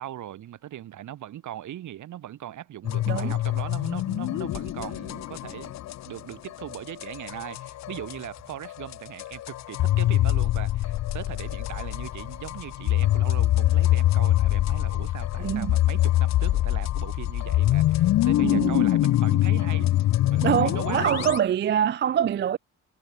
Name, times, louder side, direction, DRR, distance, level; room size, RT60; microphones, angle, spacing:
voice 1, 0.0-5.8 6.1-19.9 20.3-21.3, right 12 dB, 75° right, 5.8 m, -39 dB
sound 1, 2.8-8.3 8.6-21.4, left 14 dB, 65° left, 0.6 m, -24 dB
voice 2, 15.4-15.7 18.4-18.8 20.4-22.6, right 9 dB, 40° right, 0.4 m, -24 dB
cardioid pair, 90°, 30 cm